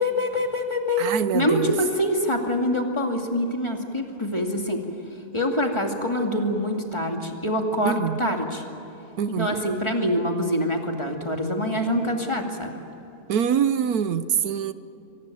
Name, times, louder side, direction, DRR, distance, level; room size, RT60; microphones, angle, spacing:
voice 1, 0.0-1.1 1.3-4.8 5.3-8.6 9.4-12.7, left 1 dB, 20° left, 2 dB, 2.4 m, -25 dB
voice 2, 1.0-1.7 7.8-8.2 9.2-9.6 13.3-14.7, right 8 dB, 80° right, 13 dB, 1.3 m, -24 dB
24.0 x 19.0 x 9.1 m, 3.0 s
omnidirectional pair, 1.6 m